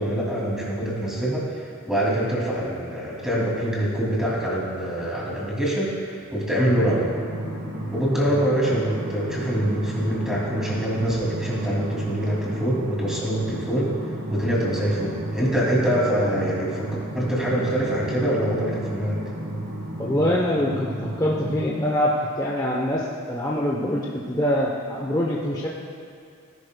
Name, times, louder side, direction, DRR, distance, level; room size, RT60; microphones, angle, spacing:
voice 1, 0.0-7.0 7.9-13.9 14.3-16.9 17.1-19.2, right 1 dB, 5° right, -6 dB, 2.5 m, -25 dB
sound 1, 6.7-21.7, right 1 dB, 75° right, 1.6 m, -32 dB
voice 2, 20.0-24.0 24.3-25.7, left 1 dB, 15° left, -3 dB, 0.8 m, -24 dB
17.5 x 11.0 x 2.3 m, 2.5 s
head